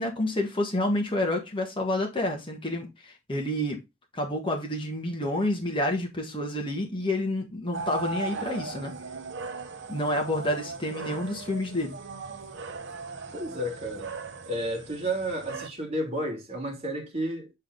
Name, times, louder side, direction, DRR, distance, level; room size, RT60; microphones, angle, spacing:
voice 1, 0.0-3.8 4.1-8.9 9.9-12.0, left 1 dB, 25° left, 1.5 m, -29 dB
sound 1, 7.7-15.7, right 4 dB, 55° right, 0.9 m, -38 dB
voice 2, 13.3-14.1 14.5-17.5, right 1 dB, 30° right, 2.2 m, -31 dB
8.1 x 3.7 x 3.8 m
head